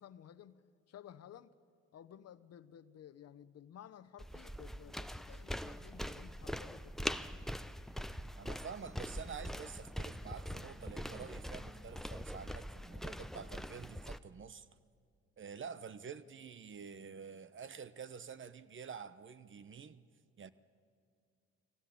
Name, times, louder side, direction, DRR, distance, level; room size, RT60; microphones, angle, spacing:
voice 1, 0.0-1.6 1.9-7.3, left 10 dB, 55° left, 0.9 m, -55 dB
sound 1, 4.2-14.2, equal, ahead, 0.7 m, -43 dB
voice 2, 8.4-14.7 15.4-20.1 20.4-20.5, right 6 dB, 40° right, 0.9 m, -48 dB
21.5 x 17.0 x 8.5 m
supercardioid pair, 65°, 30 cm